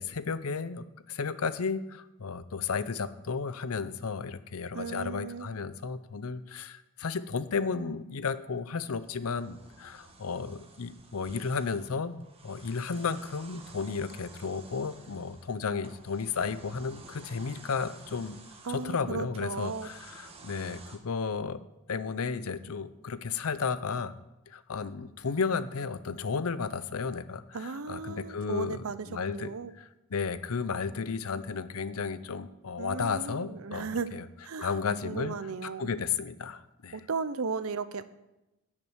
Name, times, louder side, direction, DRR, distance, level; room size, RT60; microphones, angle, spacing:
voice 1, 0.0-18.4 18.7-21.6 21.9-24.1 24.5-34.3 34.6-35.3 35.6-37.0, left 5 dB, 75° left, 14 dB, 0.6 m, -33 dB
voice 2, 4.7-5.5 18.6-19.9 27.5-29.7 32.8-34.2 34.4-34.7 35.0-35.9 36.9-38.0, right 5 dB, 75° right, 13 dB, 0.6 m, -36 dB
sound 1, 8.9-21.0, right 3 dB, 25° right, 1.2 m, -52 dB
10.5 x 6.1 x 8.0 m, 0.95 s
head